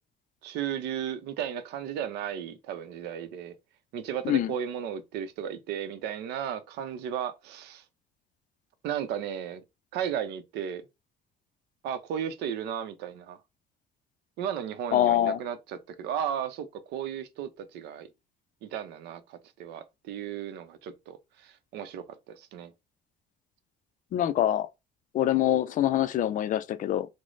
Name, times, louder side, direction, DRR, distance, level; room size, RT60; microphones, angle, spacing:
voice 1, 0.4-3.5 3.9-7.8 8.8-9.6 9.9-10.8 11.8-13.4 14.4-18.1 18.6-22.7, right 9 dB, 85° right, 0.5 m, -35 dB
voice 2, 14.9-15.4 24.1-24.7 25.1-27.1, left 12 dB, 50° left, 0.4 m, -25 dB
3.0 x 2.0 x 3.8 m
cardioid pair, 110°, 17 cm